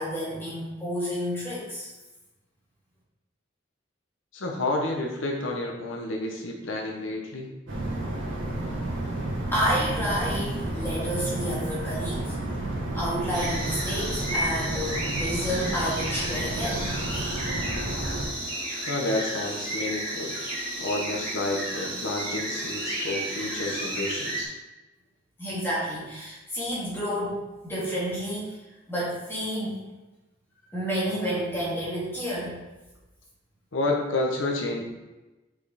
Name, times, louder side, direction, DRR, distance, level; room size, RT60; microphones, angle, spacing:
voice 1, 0.0-1.9 9.5-12.3 12.9-16.9 25.4-28.6 28.9-29.7 30.7-32.6, equal, 10° left, -8 dB, 2.3 m, -30 dB
voice 2, 4.3-7.5 18.9-20.4 20.8-24.5 33.7-34.8, left 2 dB, 80° left, 1 dB, 1.0 m, -30 dB
sound 1, 7.7-18.3, right 1 dB, 80° right, 1.6 m, -31 dB
sound 2, 13.3-24.4, right 1 dB, 20° right, 2.3 m, -32 dB
5.9 x 5.1 x 4.1 m, 1.1 s
head